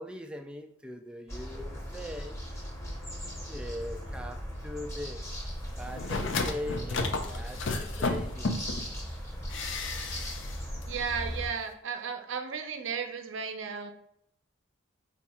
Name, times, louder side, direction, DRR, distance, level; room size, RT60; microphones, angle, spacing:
voice 1, 0.0-2.3 3.4-5.2 5.8-8.5, left 1 dB, 5° right, 4 dB, 0.3 m, -40 dB
sound 1, 1.3-11.5, equal, 15° left, 0.8 m, -38 dB
sound 2, 5.8-8.9 9.5-10.6 10.8-10.9, left 3 dB, 60° left, 0.5 m, -32 dB
voice 2, 10.9-13.9, right 6 dB, 65° right, 6 dB, 0.5 m, -34 dB
4.6 x 2.4 x 4.2 m, 0.75 s
head